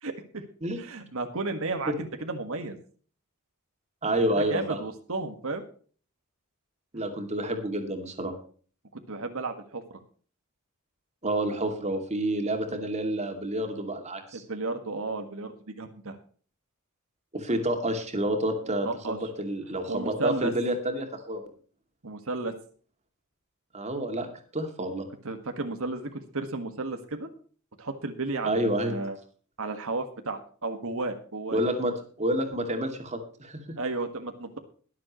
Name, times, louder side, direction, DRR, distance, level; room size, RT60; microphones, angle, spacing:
voice 1, 0.0-0.4 0.8-2.8 4.3-5.6 8.9-10.0 14.3-16.2 18.6-19.2 19.9-20.5 22.0-22.5 25.2-27.3 27.8-29.2 29.6-31.6 33.8-34.6, right 3 dB, 65° right, 6 dB, 1.7 m, -33 dB
voice 2, 4.0-4.8 6.9-8.4 11.2-14.4 17.3-21.4 23.7-24.3 24.5-25.1 28.4-28.9 31.5-33.6, right 1 dB, 30° right, 5 dB, 2.5 m, -29 dB
22.0 x 7.6 x 3.1 m, 0.43 s
head